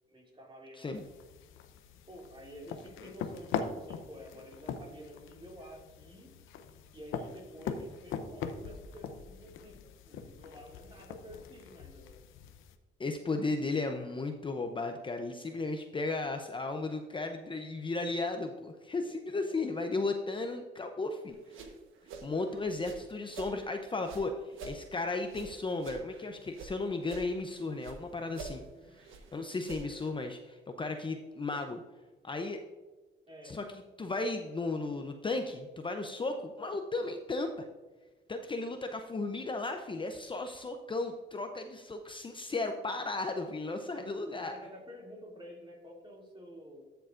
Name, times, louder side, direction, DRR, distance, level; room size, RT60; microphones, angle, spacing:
voice 1, 0.1-1.0 2.1-6.4 6.9-12.2 19.0-19.6 28.7-29.0 33.3-33.6 43.9-46.9, equal, 25° right, -1 dB, 2.7 m, -50 dB
sound 1, 0.9-12.7, left 6 dB, 85° left, 0.7 m, -42 dB
voice 2, 13.0-21.7 22.2-28.6 29.0-31.8 32.2-32.6 33.4-33.6 34.0-37.7 38.3-44.6, left 3 dB, 25° left, 5 dB, 0.6 m, -35 dB
sound 2, 21.3-23.6 24.0-26.7 27.0-28.0 28.3-30.1, right 4 dB, 80° right, 1.2 m, -47 dB
13.0 x 6.8 x 2.5 m, 1.3 s
cardioid pair, 90°, 20 cm